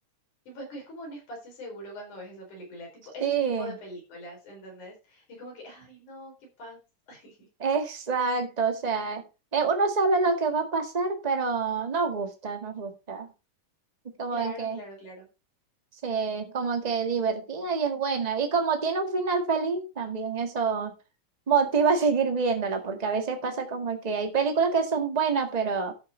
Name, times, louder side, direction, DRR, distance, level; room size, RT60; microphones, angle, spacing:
voice 1, 0.5-6.8 7.1-7.4 14.3-15.3, equal, 75° left, 0 dB, 6.0 m, -42 dB
voice 2, 3.2-3.7 7.6-9.2 9.5-13.3 14.2-14.8 16.0-20.9 21.5-25.9, right 5 dB, 20° right, 5 dB, 1.0 m, -26 dB
13.0 x 5.9 x 4.4 m, 0.29 s
omnidirectional pair, 3.5 m